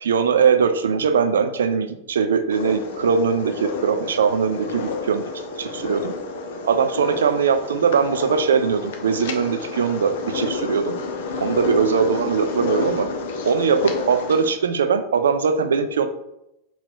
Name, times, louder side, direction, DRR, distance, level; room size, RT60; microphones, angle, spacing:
voice 1, 0.0-5.2 5.6-6.1 6.6-10.9 11.4-13.1 13.4-16.1, right 6 dB, 65° right, 9 dB, 0.3 m, -21 dB
sound 1, 2.5-14.5, left 4 dB, 55° left, 0.5 m, -30 dB
3.7 x 2.3 x 3.5 m, 0.87 s
figure-of-eight pair, 90°, 0 cm